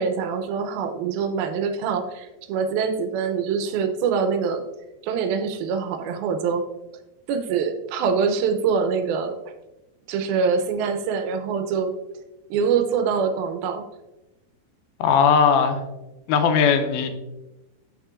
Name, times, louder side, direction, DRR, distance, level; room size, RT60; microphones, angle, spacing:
voice 1, 0.0-4.6 5.0-6.7 7.3-9.4 10.1-11.9 12.5-13.8, right 6 dB, 85° right, 7 dB, 2.5 m, -24 dB
voice 2, 15.0-15.8 16.3-17.1, left 6 dB, 85° left, 6 dB, 2.6 m, -18 dB
8.1 x 6.5 x 2.4 m, 0.99 s
omnidirectional pair, 4.3 m